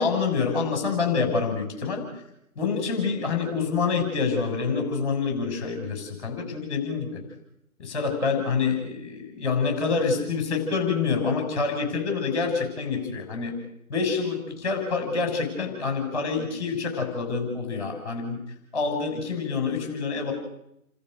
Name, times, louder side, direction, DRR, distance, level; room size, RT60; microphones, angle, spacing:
voice 1, 0.0-2.0 2.6-7.2 7.8-13.6 13.9-18.4 18.7-20.3, left 5 dB, 25° left, 2 dB, 6.5 m, -27 dB
30.0 x 14.0 x 6.7 m, 0.80 s
figure-of-eight pair, 155°, 45 cm